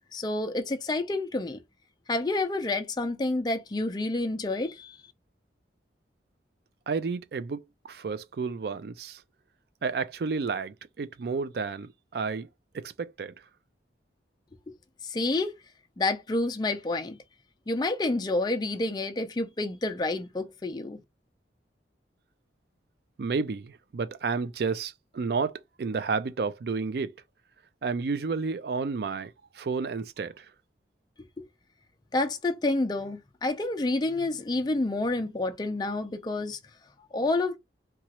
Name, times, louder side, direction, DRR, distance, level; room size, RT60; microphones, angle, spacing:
voice 1, 0.1-1.6 2.1-5.0 15.0-15.5 16.0-17.2 17.7-21.0 31.4-31.5 32.1-36.6 37.1-37.6, left 2 dB, 25° left, 0.4 m, -29 dB
voice 2, 6.9-9.2 9.8-12.5 12.7-13.3 23.2-27.1 27.8-30.5, right 4 dB, 60° right, 0.4 m, -31 dB
3.0 x 2.3 x 2.8 m
head